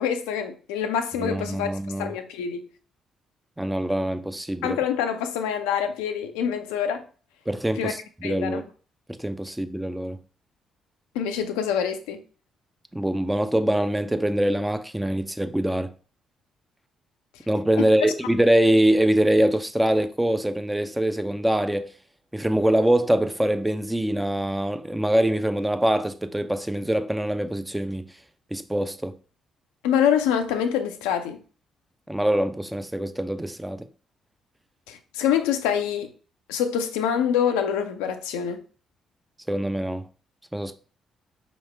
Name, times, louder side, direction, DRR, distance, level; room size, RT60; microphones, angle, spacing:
voice 1, 0.0-1.7 2.0-2.6 4.6-7.0 7.8-7.9 8.2-8.6 11.1-12.2 17.8-17.9 29.8-31.4 34.9-36.1 36.5-38.6, left 8 dB, 75° left, 0.4 m, -25 dB
voice 2, 1.2-2.1 3.6-4.8 7.5-8.6 9.1-10.2 12.9-15.9 17.5-21.9 22.3-28.0 28.5-29.2 32.1-33.9 39.5-40.0 40.5-40.7, right 1 dB, 10° right, 0.5 m, -24 dB
4.7 x 3.0 x 3.2 m
figure-of-eight pair, 40°, 0 cm